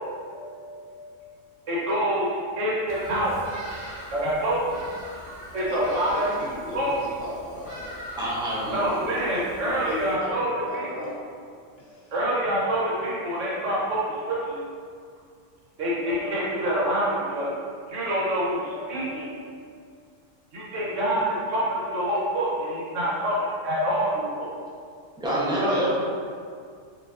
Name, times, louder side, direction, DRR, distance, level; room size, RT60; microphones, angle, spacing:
voice 1, 0.3-1.3 1.7-4.9 5.5-6.2 6.7-6.9 8.7-11.1 12.1-14.6 15.8-17.5 17.9-19.6 20.5-24.6 25.6-26.0, right 1 dB, 80° right, -6 dB, 1.3 m, -27 dB
Bird vocalization bird call bird song, 2.9-10.1, equal, 55° right, 0.9 m, -42 dB
voice 2, 5.7-8.0 9.3-11.2 11.8-12.1, left 2 dB, 60° left, -4 dB, 0.8 m, -37 dB
voice 3, 8.2-9.1 25.2-26.0, equal, 5° right, -8 dB, 0.6 m, -27 dB
4.8 x 2.7 x 2.5 m, 2.2 s
omnidirectional pair, 1.3 m